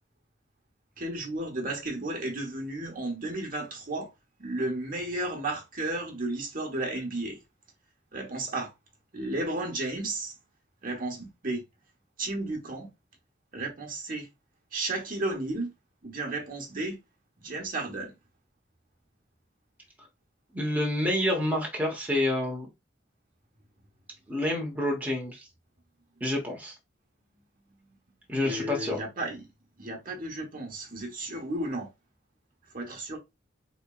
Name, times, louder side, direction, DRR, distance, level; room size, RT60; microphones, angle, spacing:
voice 1, 1.0-4.1 4.4-7.4 8.1-8.7 9.1-10.3 10.8-11.6 12.2-12.9 13.5-14.3 14.7-15.7 16.0-17.0 17.4-18.1 28.4-29.5 29.8-31.9 32.7-33.2, right 2 dB, 50° right, 1.1 m, -33 dB
voice 2, 20.5-22.7 24.3-25.5 26.2-26.7 28.3-29.0, left 1 dB, 10° right, 1.0 m, -28 dB
4.2 x 3.0 x 2.3 m
head